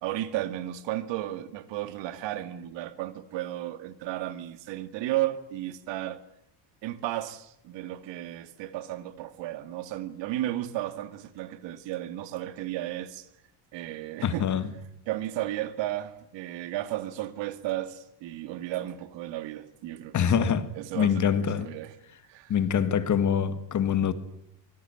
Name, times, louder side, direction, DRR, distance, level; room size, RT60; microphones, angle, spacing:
voice 1, 0.0-6.2 6.8-13.3 13.7-14.5 15.1-21.9 22.3-22.5, right 14 dB, 60° right, 2.3 m, -34 dB
voice 2, 14.2-14.8 20.1-20.7 21.0-21.7 22.5-24.1, left 8 dB, 35° left, 2.0 m, -25 dB
25.0 x 19.5 x 9.2 m
cardioid pair, 135°, 49 cm